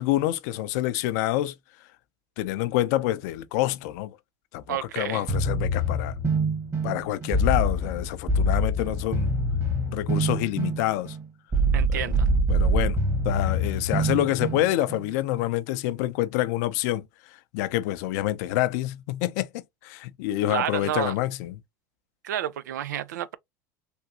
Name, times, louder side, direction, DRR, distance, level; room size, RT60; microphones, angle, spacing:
voice 1, 0.0-1.5 2.4-4.1 4.5-6.2 6.8-9.3 9.9-11.2 11.9-12.0 12.5-13.0 13.2-17.1 17.5-21.5, left 15 dB, 70° left, 0.5 m, -27 dB
voice 2, 4.7-5.3 11.7-12.3 20.5-21.2 22.2-23.4, right 11 dB, 80° right, 0.4 m, -30 dB
sound 1, 5.3-15.1, right 1 dB, 30° right, 1.4 m, -25 dB
3.4 x 2.6 x 2.8 m
hypercardioid pair, 80°, 9 cm